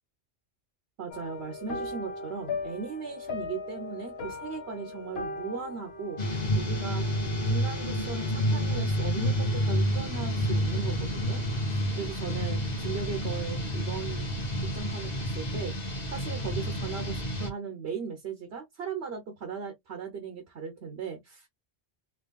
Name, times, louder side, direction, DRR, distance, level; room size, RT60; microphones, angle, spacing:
voice 1, 1.0-6.2 6.5-7.0 7.4-11.4 11.9-15.8 16.1-21.5, right 6 dB, 70° right, 1.2 m, -38 dB
sound 1, 1.1-10.7 10.9-11.3 11.7-11.8, left 3 dB, 65° left, 1.0 m, -40 dB
sound 2, 6.2-17.5, equal, 40° left, 1.2 m, -29 dB
3.6 x 3.3 x 2.3 m
omnidirectional pair, 1.1 m